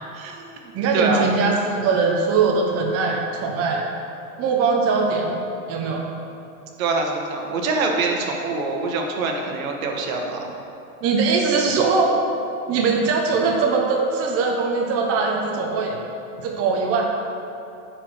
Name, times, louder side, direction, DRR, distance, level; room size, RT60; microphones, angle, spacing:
voice 1, 0.1-0.5 0.9-1.3 6.8-10.5, right 3 dB, 70° right, 2 dB, 1.5 m, -24 dB
voice 2, 0.7-3.8 4.4-5.4 5.7-6.1 11.0-12.1 12.7-16.0 16.4-17.1, right 4 dB, 35° right, 0 dB, 0.9 m, -21 dB
8.9 x 4.6 x 6.5 m, 2.7 s
hypercardioid pair, 120°, 42 cm